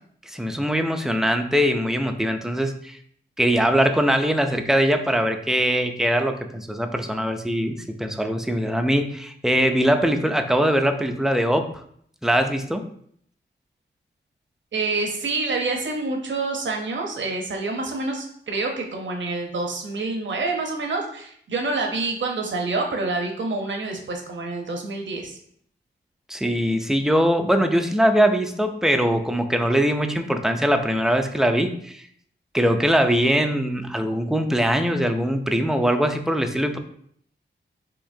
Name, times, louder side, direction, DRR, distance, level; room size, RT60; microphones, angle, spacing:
voice 1, 0.3-3.0 3.4-11.7 12.2-12.9 26.3-32.0 32.5-36.8, equal, ahead, 6 dB, 0.4 m, -22 dB
voice 2, 14.7-25.4, right 3 dB, 70° right, 2 dB, 0.9 m, -27 dB
6.9 x 2.9 x 2.7 m, 0.65 s
wide cardioid pair, 120°, 20 cm